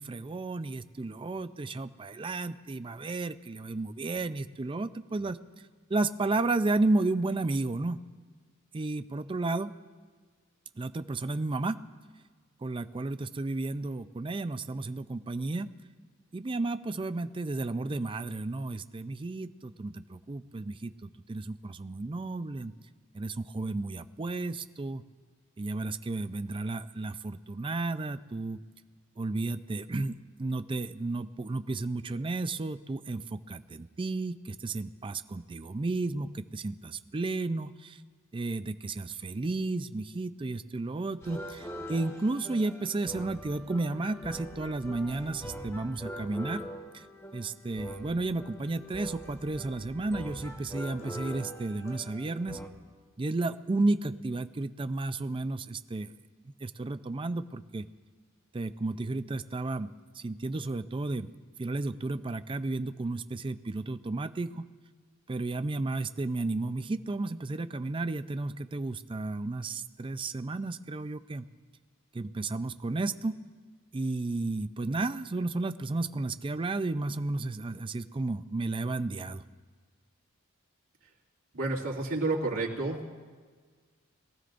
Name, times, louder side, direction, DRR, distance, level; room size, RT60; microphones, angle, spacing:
voice 1, 0.0-5.4 5.9-8.0 8.7-9.7 10.8-11.8 12.6-15.7 16.3-22.7 23.1-25.0 25.6-28.6 29.2-38.0 38.3-46.6 46.9-47.1 47.3-52.6 53.2-56.1 56.6-57.8 58.5-61.3 61.6-64.7 65.3-71.5 72.1-73.4 73.9-79.4, right 2 dB, 25° right, 12 dB, 0.4 m, -33 dB
sound 1, 41.2-52.7, equal, 15° left, 1.2 m, -43 dB
voice 2, 81.5-83.0, right 2 dB, 85° right, -3 dB, 2.5 m, -30 dB
22.5 x 14.5 x 2.6 m, 1.5 s
head